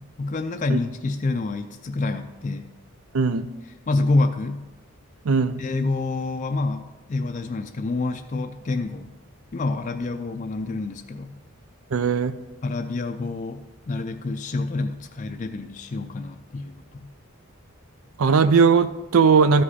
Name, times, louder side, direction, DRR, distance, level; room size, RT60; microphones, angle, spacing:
voice 1, 0.0-2.7 3.9-4.6 5.6-9.1 9.5-11.4 12.6-17.1, left 3 dB, 35° left, 5 dB, 0.4 m, -27 dB
voice 2, 3.1-3.5 5.2-5.6 11.9-12.3 18.2-19.6, right 5 dB, 75° right, 13 dB, 0.5 m, -18 dB
13.0 x 5.1 x 4.2 m, 1.1 s
head